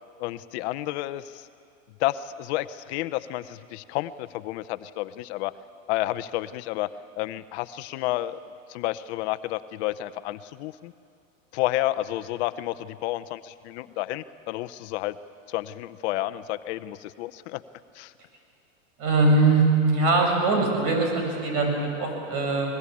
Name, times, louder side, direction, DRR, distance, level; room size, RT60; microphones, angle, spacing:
voice 1, 0.2-1.5 2.0-5.5 5.9-6.9 7.2-8.4 8.7-10.9 11.5-15.2 15.5-17.6 17.9-18.1, left 16 dB, 55° left, 14 dB, 0.8 m, -30 dB
voice 2, 19.0-22.8, right 3 dB, 50° right, 2 dB, 7.3 m, -22 dB
21.0 x 21.0 x 8.5 m, 2.4 s
hypercardioid pair, 110°, 39 cm